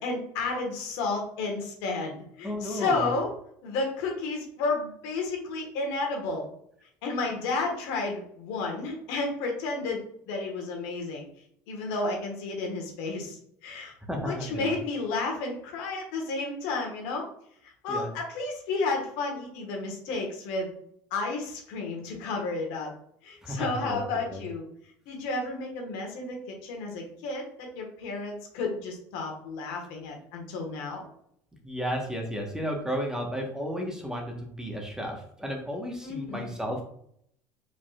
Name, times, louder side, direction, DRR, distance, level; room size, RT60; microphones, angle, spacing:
voice 1, 0.0-3.3 3.6-6.5 7.0-11.2 11.7-13.9 14.2-17.2 17.8-20.7 21.1-22.9 23.2-24.6 25.1-31.1 36.0-36.5, left 3 dB, 80° left, 1 dB, 1.5 m, -32 dB
voice 2, 2.4-3.1 14.1-14.8 17.9-18.1 23.4-24.0 24.3-24.4 31.6-36.9, equal, 5° right, 1 dB, 1.2 m, -33 dB
5.1 x 4.0 x 2.4 m, 0.68 s
supercardioid pair, 95°, 8 cm